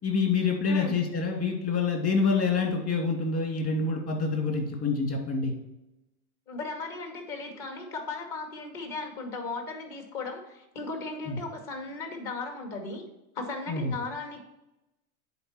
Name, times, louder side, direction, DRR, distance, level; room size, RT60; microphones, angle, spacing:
voice 1, 0.0-5.5 11.3-11.4 13.7-13.9, left 4 dB, 35° left, 1 dB, 2.5 m, -27 dB
voice 2, 6.5-13.0 13.3-14.4, left 3 dB, 50° left, 3 dB, 2.4 m, -36 dB
9.9 x 4.3 x 4.4 m, 0.95 s
hypercardioid pair, 95°, 43 cm